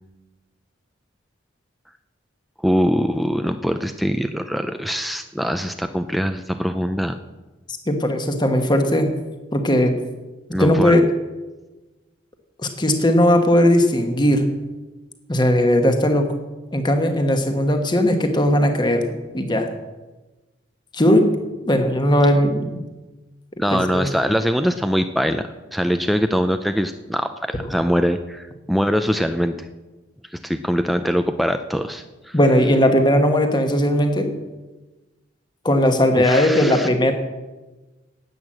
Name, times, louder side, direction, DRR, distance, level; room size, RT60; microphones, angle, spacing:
voice 1, 2.6-7.2 10.5-11.0 23.6-29.5 30.4-32.3 36.2-36.9, equal, ahead, 7 dB, 0.4 m, -22 dB
voice 2, 7.9-9.1 9.5-9.9 10.6-11.0 12.6-14.5 15.3-16.3 16.7-19.7 20.9-21.3 21.6-22.8 23.7-24.1 32.3-34.3 35.6-37.1, left 1 dB, 20° left, 6 dB, 1.3 m, -18 dB
11.0 x 9.0 x 7.6 m, 1.2 s
head